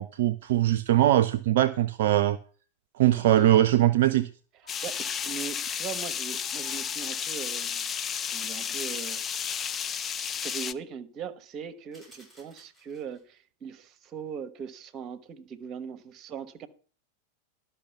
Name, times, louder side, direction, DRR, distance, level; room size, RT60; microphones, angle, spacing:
voice 1, 0.0-2.4 3.0-4.3, right 13 dB, 55° right, 0.4 m, -21 dB
sound 1, 3.0-4.1 4.6-5.7 6.3-7.4, left 5 dB, 60° left, 2.8 m, -52 dB
voice 2, 3.0-3.7 4.8-7.9 8.3-9.2 10.4-16.7, right 7 dB, 30° right, 1.2 m, -40 dB
sound 2, 4.7-10.7, left 7 dB, 25° left, 0.5 m, -32 dB
sound 3, 11.9-13.4, right 1 dB, 5° left, 7.2 m, -57 dB
12.0 x 5.9 x 6.9 m
figure-of-eight pair, 90°, 0 cm